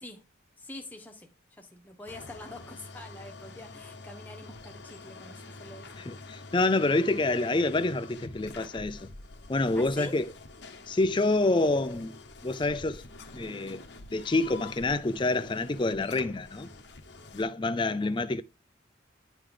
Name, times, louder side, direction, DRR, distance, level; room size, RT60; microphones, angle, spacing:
voice 1, 0.6-1.3 1.6-5.9 9.7-10.2 17.9-18.2, left 1 dB, 10° left, 1.2 m, -45 dB
sound 1, 2.1-17.4, left 3 dB, 65° left, 1.1 m, -47 dB
voice 2, 6.1-9.1 9.5-10.2 10.9-12.2 12.4-13.0 13.3-13.8 14.1-16.7 17.3-18.4, left 2 dB, 25° left, 0.4 m, -27 dB
10.0 x 3.8 x 4.9 m
head